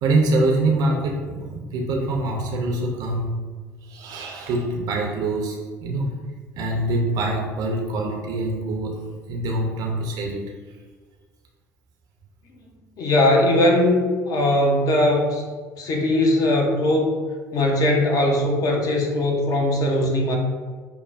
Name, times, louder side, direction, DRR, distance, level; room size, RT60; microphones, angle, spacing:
voice 1, 0.0-3.4 3.8-6.1 6.5-9.0 9.3-10.4 10.7-10.8, right 2 dB, 50° right, 0 dB, 0.6 m, -24 dB
voice 2, 13.0-15.4 15.8-17.1 17.5-20.4, left 1 dB, 40° left, 1 dB, 0.7 m, -20 dB
5.9 x 2.1 x 2.4 m, 1.5 s
figure-of-eight pair, 60°, 9 cm